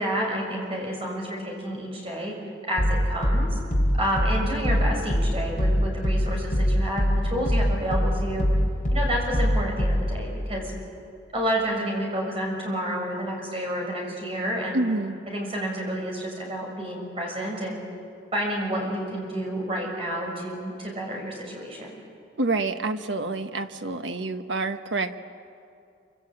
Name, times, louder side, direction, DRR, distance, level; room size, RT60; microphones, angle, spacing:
voice 1, 0.0-2.3 2.7-3.5 4.0-8.5 8.9-10.7 11.3-14.8 15.3-17.8 18.3-22.0, equal, 30° right, -1 dB, 6.5 m, -29 dB
sound 1, 2.8-10.3, equal, 40° left, 4.3 m, -24 dB
voice 2, 14.7-15.2 22.4-25.2, right 2 dB, 75° right, 8 dB, 1.3 m, -27 dB
26.0 x 25.5 x 8.9 m, 2.6 s
head